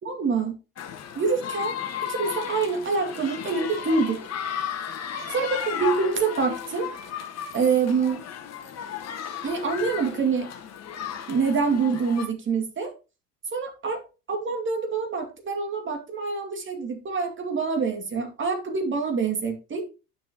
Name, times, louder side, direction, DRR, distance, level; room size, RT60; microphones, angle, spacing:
voice 1, 0.1-0.6 1.1-1.7 2.1-4.3 5.3-6.9 7.5-8.2 9.4-10.5 11.3-12.9 13.5-14.0 14.3-19.8, right 5 dB, 25° right, 5 dB, 2.3 m, -26 dB
sound 1, 0.8-12.3, left 8 dB, 30° left, 1.7 m, -34 dB
10.0 x 6.3 x 3.0 m, 0.29 s
figure-of-eight pair, 80°, 48 cm